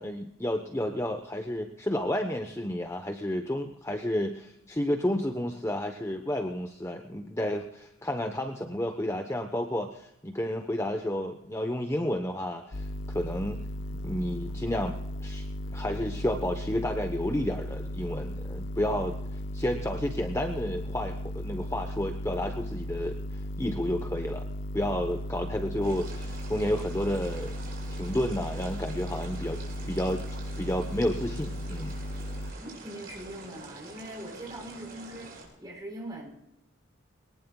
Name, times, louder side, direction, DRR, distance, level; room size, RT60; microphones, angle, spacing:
voice 1, 0.0-13.6 14.0-23.2 23.6-24.4 24.7-27.5 28.0-30.2 30.6-32.0, left 1 dB, 15° left, 5 dB, 0.9 m, -31 dB
sound 1, 12.7-32.5, left 1 dB, 65° left, 0.8 m, -36 dB
sound 2, 25.8-35.4, right 2 dB, 50° right, 5.6 m, -46 dB
voice 2, 32.6-36.3, right 1 dB, 20° right, 1 dB, 4.2 m, -42 dB
22.5 x 19.0 x 2.3 m, 0.80 s
head